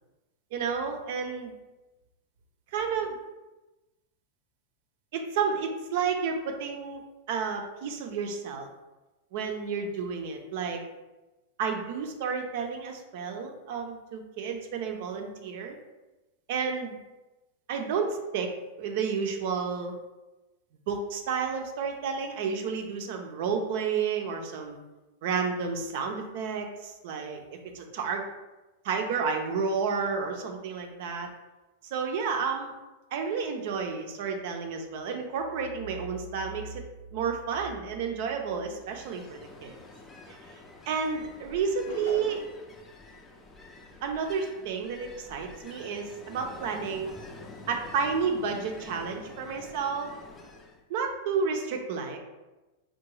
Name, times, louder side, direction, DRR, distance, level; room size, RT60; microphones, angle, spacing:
voice 1, 0.5-1.5 2.7-3.2 5.1-7.0 7.3-8.7 9.3-10.8 11.6-15.8 16.5-17.0 17.7-18.5 18.8-20.0 20.9-24.8 25.2-28.2 28.8-31.3 31.8-32.7 33.1-36.8 37.1-39.8 40.3-40.4 40.9-42.4 44.0-47.2 47.7-50.1 50.9-52.2, right 5 dB, 65° right, 4 dB, 0.5 m, -31 dB
Ocean, 38.6-50.8, left 2 dB, 20° left, 0.4 m, -48 dB
sound 1, 41.8-42.7, left 1 dB, 85° left, 0.6 m, -38 dB
3.6 x 2.2 x 3.1 m, 1.1 s
hypercardioid pair, 115°, 0 cm